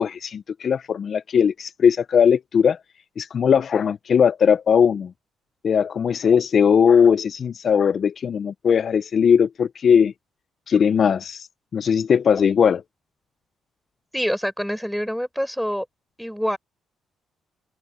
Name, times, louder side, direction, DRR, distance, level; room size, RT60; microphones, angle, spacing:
voice 1, 0.0-2.8 3.2-5.1 5.6-10.1 10.7-11.5 11.7-12.8, left 7 dB, 50° left, 0.5 m, -19 dB
voice 2, 14.1-15.9 16.2-16.6, equal, ahead, 4.1 m, -26 dB
cardioid pair, 90°, 0 cm